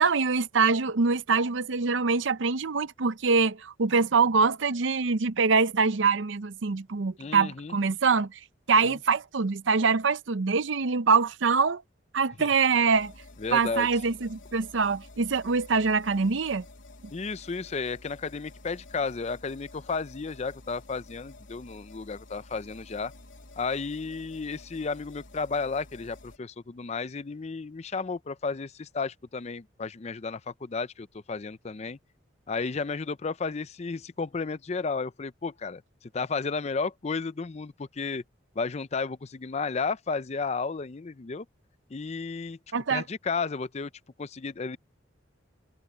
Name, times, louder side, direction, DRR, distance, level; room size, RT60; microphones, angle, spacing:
voice 1, 0.0-8.4 8.7-11.8 12.1-13.1 13.5-16.6 42.7-43.0, right 4 dB, 75° right, 0.7 m, -24 dB
voice 2, 7.2-7.8 12.4-12.5 13.4-13.9 17.1-23.1 23.6-32.0 32.5-35.8 36.1-38.2 38.6-41.5 41.9-42.6 42.9-43.9 44.2-44.8, left 4 dB, 35° left, 0.5 m, -33 dB
sound 1, 12.9-26.4, left 2 dB, 80° left, 3.0 m, -50 dB
head